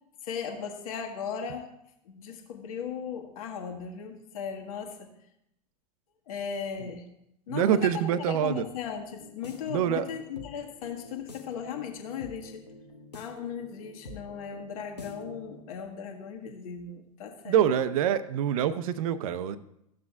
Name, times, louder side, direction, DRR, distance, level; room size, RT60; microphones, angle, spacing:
voice 1, 0.2-1.6 2.1-5.1 6.3-7.1 7.5-12.7 13.1-17.6, left 7 dB, 60° left, 2 dB, 1.5 m, -37 dB
voice 2, 7.5-8.6 9.7-10.1 17.5-19.6, right 9 dB, 60° right, 14 dB, 0.6 m, -25 dB
sound 1, 9.1-15.6, left 3 dB, 90° left, 1.2 m, -47 dB
14.0 x 7.4 x 2.5 m, 0.81 s
figure-of-eight pair, 95°, 21 cm